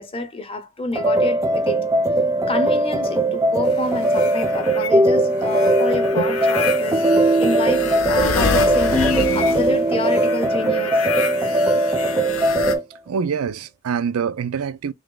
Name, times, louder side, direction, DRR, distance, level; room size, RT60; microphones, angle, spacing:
voice 1, 0.0-1.8 2.5-7.0 7.4-9.0 9.3-11.1, left 2 dB, 25° left, 0.7 m, -28 dB
sound 1, 1.0-12.8, right 1 dB, 15° right, 0.5 m, -19 dB
sound 2, 3.6-4.9 5.4-12.8, left 5 dB, 75° left, 0.7 m, -28 dB
voice 2, 13.1-14.9, right 6 dB, 85° right, 0.4 m, -25 dB
3.4 x 3.0 x 3.7 m
head